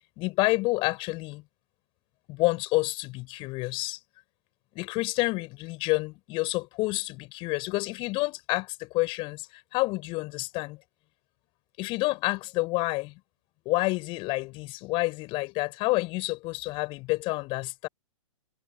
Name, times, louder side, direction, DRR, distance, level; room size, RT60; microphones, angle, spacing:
voice 1, 0.2-1.4 2.3-4.0 4.7-10.8 11.8-13.1 13.6-17.9, left 23 dB, 30° left, 7.7 m, -29 dB
figure-of-eight pair, 115°, 17 cm